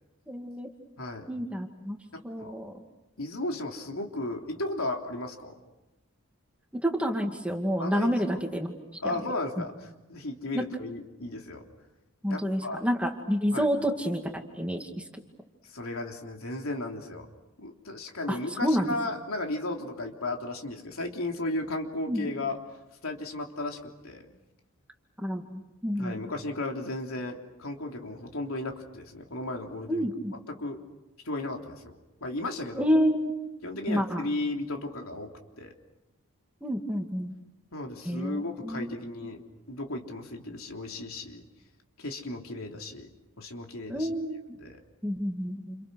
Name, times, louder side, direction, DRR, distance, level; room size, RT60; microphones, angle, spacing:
voice 1, 0.3-0.7 1.3-2.0 2.2-2.8 6.8-8.7 9.0-9.1 10.5-10.6 12.2-14.9 18.3-18.9 22.1-22.3 25.2-26.2 29.9-30.3 32.8-33.3 33.9-34.2 36.6-37.3 38.1-38.9 43.9-44.4 45.0-45.8, equal, 5° right, 3 dB, 2.3 m, -29 dB
voice 2, 1.0-1.3 2.1-2.6 3.2-5.6 7.8-8.4 9.0-11.6 12.3-12.9 13.5-13.7 15.7-17.3 17.6-22.6 23.0-24.3 26.0-30.1 30.5-30.8 31.3-32.9 33.6-35.3 35.6-35.7 37.7-39.4 39.7-41.5 42.0-43.1 43.4-44.1 44.6-44.8, left 2 dB, 75° left, 2 dB, 3.4 m, -35 dB
29.5 x 29.5 x 6.4 m, 0.98 s
head